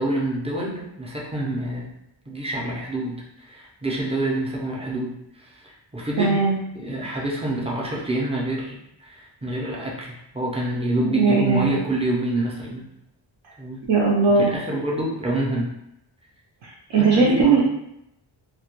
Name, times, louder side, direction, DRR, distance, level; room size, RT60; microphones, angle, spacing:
voice 1, 0.0-1.9 2.3-6.4 6.7-12.9 13.6-13.8 14.3-15.7 16.9-17.6, right 1 dB, 15° right, -4 dB, 0.4 m, -27 dB
voice 2, 6.2-6.6 11.0-11.7 13.9-14.5 16.6-17.6, right 4 dB, 75° right, -4 dB, 0.6 m, -19 dB
2.2 x 2.1 x 2.9 m, 0.82 s
wide cardioid pair, 155°, 47 cm